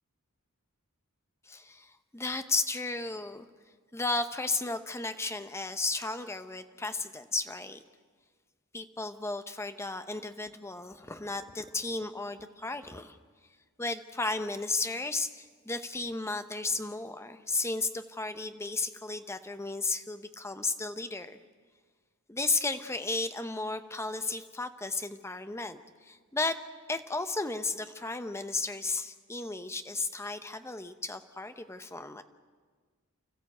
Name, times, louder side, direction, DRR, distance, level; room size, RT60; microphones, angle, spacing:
voice 1, 1.4-3.4 3.9-7.8 8.7-13.2 13.8-21.4 22.3-26.6 26.9-32.2, left 3 dB, 10° left, 9 dB, 0.8 m, -34 dB
30.0 x 14.0 x 7.9 m, 1.5 s
head